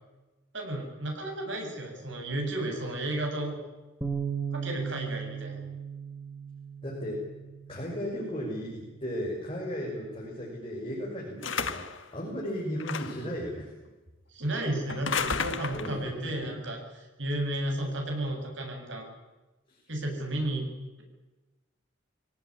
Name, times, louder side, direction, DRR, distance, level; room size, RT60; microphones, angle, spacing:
voice 1, 0.5-3.6 4.5-5.6 14.3-16.8 17.2-19.1 19.9-20.7, right 1 dB, 65° right, 2 dB, 7.6 m, -33 dB
Bass guitar, 4.0-10.3, right 6 dB, 10° right, 2.2 m, -38 dB
voice 2, 6.8-7.3 7.7-11.9 12.1-13.7 15.7-16.5 19.7-19.8, equal, 30° left, -3 dB, 6.3 m, -35 dB
sound 1, 11.4-12.0 12.8-13.3 14.9-16.0, left 5 dB, 75° left, 1.7 m, -32 dB
23.5 x 18.0 x 9.8 m, 1.1 s
head